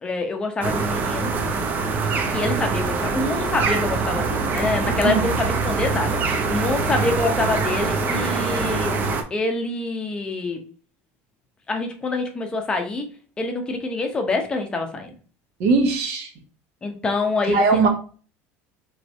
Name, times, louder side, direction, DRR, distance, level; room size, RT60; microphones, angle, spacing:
voice 1, 0.0-1.3 2.3-10.6 11.7-13.1 13.4-15.1 16.8-17.8, left 3 dB, 15° left, 4 dB, 0.7 m, -26 dB
sound 1, 0.6-9.2, right 4 dB, 35° right, 0.6 m, -24 dB
voice 2, 15.6-16.3 17.5-17.9, right 4 dB, 60° right, 4 dB, 1.1 m, -19 dB
3.2 x 3.1 x 4.0 m, 0.40 s
cardioid pair, 160°, 6 cm